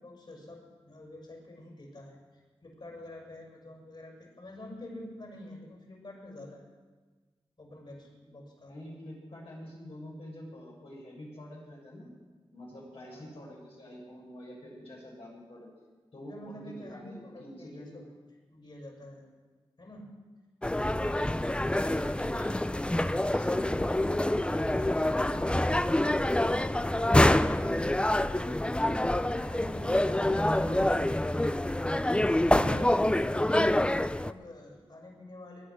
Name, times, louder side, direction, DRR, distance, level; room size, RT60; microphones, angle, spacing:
voice 1, 0.0-6.6 7.6-8.8 13.0-13.3 16.2-18.0 18.5-19.3 19.8-20.2 29.2-31.7 32.2-35.7, left 1 dB, 55° left, -1 dB, 6.6 m, -46 dB
voice 2, 8.7-12.1 12.5-15.7 16.1-18.0 20.9-21.3 21.7-23.8 24.5-27.8 28.9-29.1 30.1-31.1, left 1 dB, 75° left, -4 dB, 7.0 m, -47 dB
sound 1, 20.6-34.3, left 1 dB, 10° left, 0.5 m, -26 dB
21.0 x 10.0 x 6.5 m, 1.4 s
cardioid pair, 55°, 10 cm